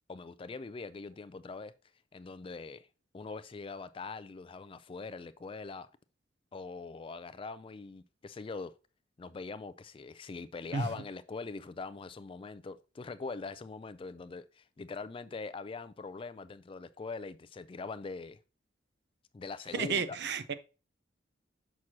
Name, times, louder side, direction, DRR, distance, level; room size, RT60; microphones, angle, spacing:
voice 1, 0.1-1.7 2.1-2.9 3.1-5.9 6.5-8.7 9.2-18.4 19.3-20.2, left 4 dB, 25° left, 0.3 m, -42 dB
voice 2, 19.7-20.5, right 5 dB, 55° right, 0.6 m, -32 dB
6.2 x 6.0 x 2.8 m
head